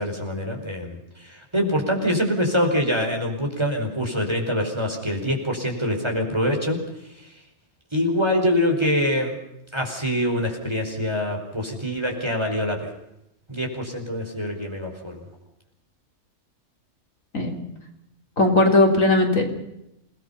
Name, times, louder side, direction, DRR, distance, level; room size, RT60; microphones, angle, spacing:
voice 1, 0.0-6.8 7.1-7.3 7.9-9.4 9.7-12.9 13.5-15.2, equal, 20° right, 2 dB, 4.9 m, -25 dB
voice 2, 18.4-19.4, left 2 dB, 65° left, 2 dB, 4.0 m, -18 dB
28.5 x 19.0 x 5.8 m, 0.83 s
omnidirectional pair, 1.5 m